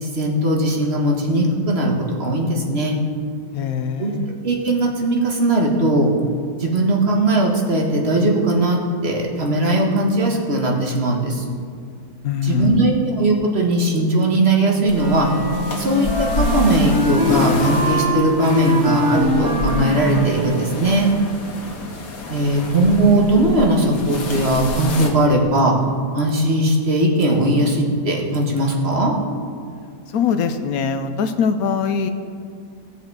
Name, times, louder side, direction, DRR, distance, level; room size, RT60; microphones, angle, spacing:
voice 1, 0.0-3.0 4.0-4.1 4.4-6.1 6.6-11.4 12.4-15.3 15.8-21.1 22.3-25.8 26.1-29.2, right 1 dB, 40° right, 0 dB, 1.7 m, -19 dB
voice 2, 3.5-4.3 12.2-12.9 30.1-32.1, left 6 dB, 70° left, 8 dB, 1.1 m, -22 dB
sound 1, 14.9-25.1, left 3 dB, 85° left, 2.0 m, -28 dB
Wind instrument woodwind instrument, 14.9-20.8, equal, 60° right, 2.5 m, -23 dB
18.0 x 6.7 x 4.7 m, 2.1 s
omnidirectional pair, 1.8 m